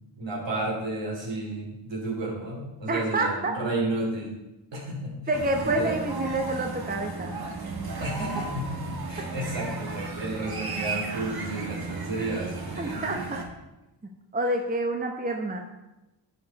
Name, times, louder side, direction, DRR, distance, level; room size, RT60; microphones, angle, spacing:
voice 1, 0.2-4.4 4.7-5.2 5.7-5.9 8.0-8.8 9.1-13.3, right 2 dB, 65° right, -2 dB, 3.0 m, -32 dB
voice 2, 2.9-3.5 5.3-7.4 12.1-12.3 12.8-13.4 14.3-15.6, right 2 dB, 20° right, 3 dB, 1.0 m, -28 dB
newjersey OC wonderscreams, 5.3-13.4, right 3 dB, 50° right, 1.5 m, -34 dB
10.0 x 4.8 x 4.1 m, 0.97 s
cardioid pair, 60°, 46 cm